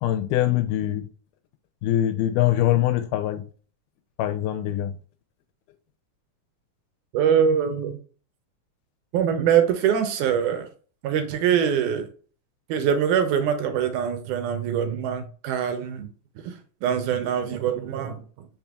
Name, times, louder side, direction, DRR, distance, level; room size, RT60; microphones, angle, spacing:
voice 1, 0.0-1.1 1.8-3.4 4.2-5.0, left 13 dB, 80° left, 2.0 m, -23 dB
voice 2, 7.1-8.0 9.1-10.7 11.0-12.1 12.7-16.1 16.4-18.5, right 8 dB, 80° right, 2.0 m, -24 dB
5.0 x 4.2 x 2.3 m
omnidirectional pair, 3.9 m